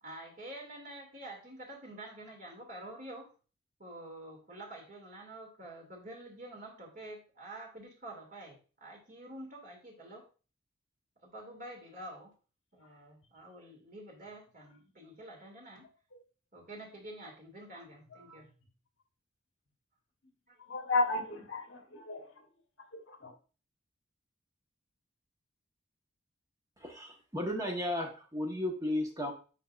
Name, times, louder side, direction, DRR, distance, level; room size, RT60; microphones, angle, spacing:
voice 1, 0.0-3.3 3.8-10.2 11.3-12.3 12.7-15.9 16.5-18.5 20.5-20.8, right 1 dB, 45° right, 2.7 m, -48 dB
voice 2, 20.7-22.2 22.9-23.3, left 3 dB, 65° left, 1.4 m, -33 dB
voice 3, 26.8-29.3, left 1 dB, 15° right, 1.4 m, -34 dB
11.0 x 3.9 x 2.6 m
head